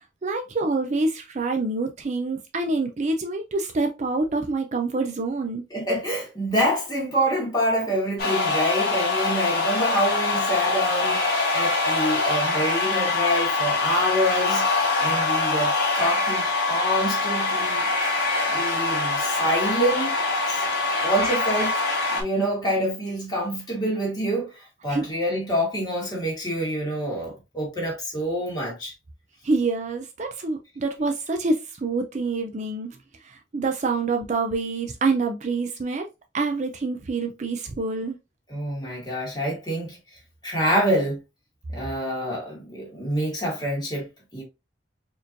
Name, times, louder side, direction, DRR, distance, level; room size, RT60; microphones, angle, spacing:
voice 1, 0.2-5.6 24.9-25.1 29.4-36.1 36.3-38.2, right 3 dB, 40° right, 0.4 m, -26 dB
voice 2, 5.7-14.7 15.0-17.9 18.3-20.2 20.5-20.7 21.0-21.8 22.1-28.9 38.5-40.0 40.4-41.2 41.7-44.4, equal, 20° left, 1.9 m, -26 dB
sound 1, 8.2-22.2, left 3 dB, 55° left, 1.4 m, -24 dB
4.3 x 3.0 x 2.5 m
head